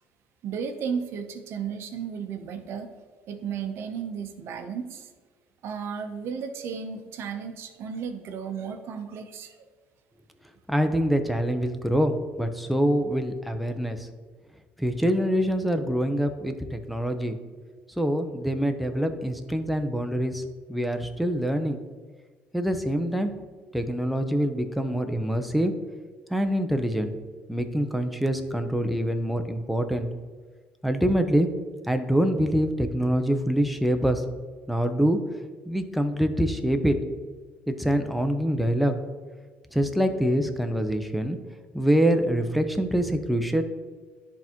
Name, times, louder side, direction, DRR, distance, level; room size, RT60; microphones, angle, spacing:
voice 1, 0.4-2.9 3.3-5.1 5.6-9.7, right 6 dB, 65° right, 6 dB, 0.8 m, -34 dB
voice 2, 10.7-14.0 14.8-17.4 18.0-20.4 20.7-21.8 22.5-23.3 23.7-25.7 26.3-27.1 27.5-30.1 30.8-31.5 31.9-34.2 34.7-35.2 35.7-37.0 37.7-38.9 39.7-41.4 41.7-43.6, equal, ahead, 6 dB, 0.7 m, -25 dB
10.5 x 3.6 x 2.9 m, 1.5 s
supercardioid pair, 80°, 5 cm